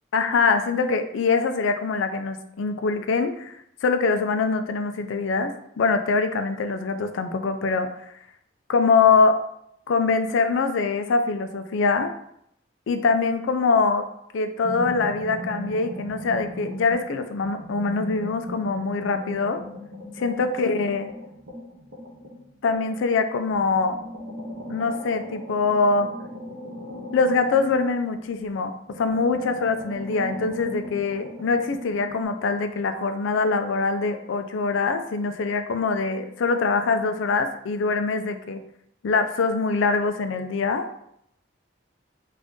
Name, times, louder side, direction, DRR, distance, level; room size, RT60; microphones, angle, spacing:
voice 1, 0.1-3.6 3.8-7.9 8.7-9.4 9.9-12.1 12.9-14.0 14.3-19.6 20.2-21.1 22.6-24.0 24.7-26.1 27.1-38.6 39.0-40.9, left 4 dB, 85° left, 8 dB, 0.4 m, -23 dB
sound 1, 14.6-17.1 17.4-23.0 23.5-28.5 28.9-32.2, equal, 75° right, 0.9 m, -38 dB
3.6 x 2.5 x 3.6 m, 0.74 s
head